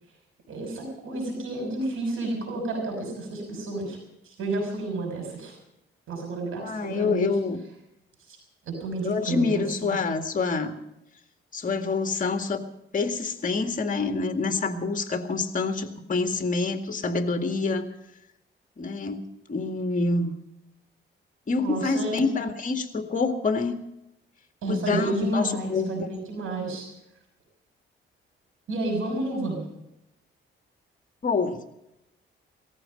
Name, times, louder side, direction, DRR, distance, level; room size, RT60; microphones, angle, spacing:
voice 1, 0.5-5.6 6.1-7.4 8.3-8.4 8.7-10.0 21.6-22.2 24.6-26.9 28.7-29.7, right 2 dB, 90° right, 2 dB, 6.2 m, -31 dB
voice 2, 6.6-7.6 9.0-10.7 11.5-12.6 12.9-17.9 18.8-20.3 21.5-23.7 24.7-26.1 31.2-31.6, left 4 dB, 40° left, 5 dB, 2.0 m, -27 dB
18.5 x 14.5 x 5.2 m, 0.86 s
cardioid pair, 115°, 21 cm